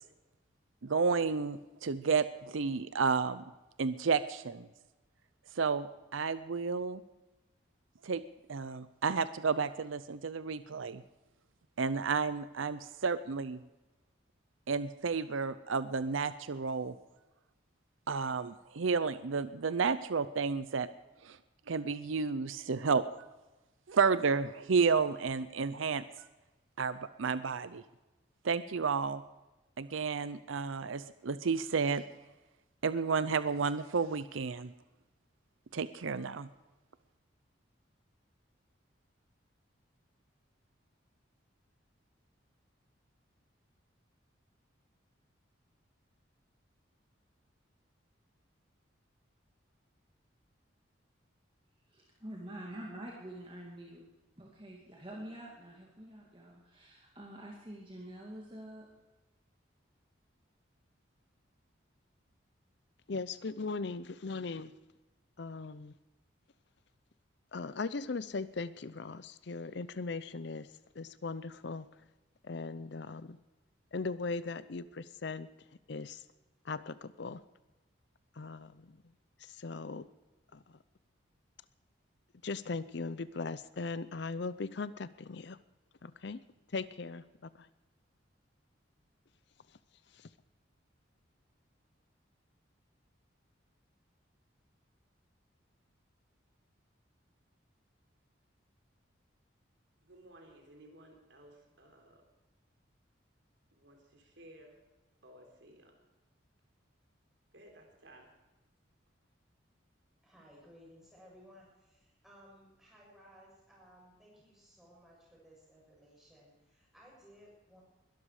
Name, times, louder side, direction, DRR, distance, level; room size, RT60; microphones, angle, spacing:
voice 1, 0.8-3.4 3.8-4.7 5.5-7.0 8.0-8.2 8.5-11.0 11.8-13.6 14.7-17.0 18.1-20.9 21.2-21.4 21.7-23.0 23.9-26.0 26.8-27.8 28.4-29.2 29.8-32.0 32.8-34.7 35.7-36.5, right 5 dB, 85° right, 14 dB, 0.6 m, -31 dB
voice 2, 52.2-54.0 54.4-58.9, right 1 dB, 25° right, -2 dB, 2.5 m, -46 dB
voice 3, 63.1-64.7 65.4-65.9 67.5-70.7 70.9-71.9 72.4-73.4 73.9-75.5 75.9-76.2 76.6-77.4 78.3-78.9 79.4-80.1 80.5-80.8 82.4-85.6 86.0-86.4 86.7-87.7 90.1-90.3, left 4 dB, 60° left, 16 dB, 0.6 m, -39 dB
voice 4, 100.0-102.2 103.7-104.8 105.2-105.9 107.5-108.3, right 1 dB, 65° right, 2 dB, 4.0 m, -57 dB
voice 5, 110.2-117.8, equal, ahead, -4 dB, 7.4 m, -59 dB
21.5 x 12.5 x 4.9 m, 1.1 s
head